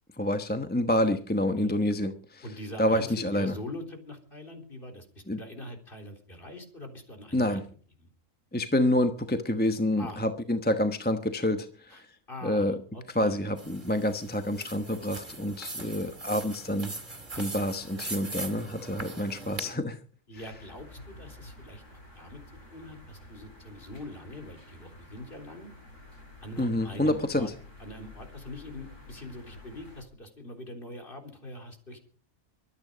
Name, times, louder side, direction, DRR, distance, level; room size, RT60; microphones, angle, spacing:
voice 1, 0.2-2.4 2.8-3.5 5.3-5.4 7.3-7.6 8.5-11.7 12.4-12.8 13.1-16.9 17.4-20.0 26.6-27.5, left 1 dB, 10° left, 7 dB, 1.0 m, -27 dB
voice 2, 1.5-1.9 2.4-7.6 8.0-8.1 10.0-10.3 11.9-12.0 12.3-13.4 17.3-17.5 20.3-22.4 22.7-25.7 26.4-27.5 27.8-32.0, left 1 dB, 45° left, 4 dB, 3.9 m, -43 dB
sound 1, 13.6-19.7, right 2 dB, 40° right, 3.1 m, -40 dB
sound 2, 20.3-30.0, left 2 dB, 70° left, 5.9 m, -50 dB
23.5 x 9.5 x 5.1 m, 0.44 s
omnidirectional pair, 1.3 m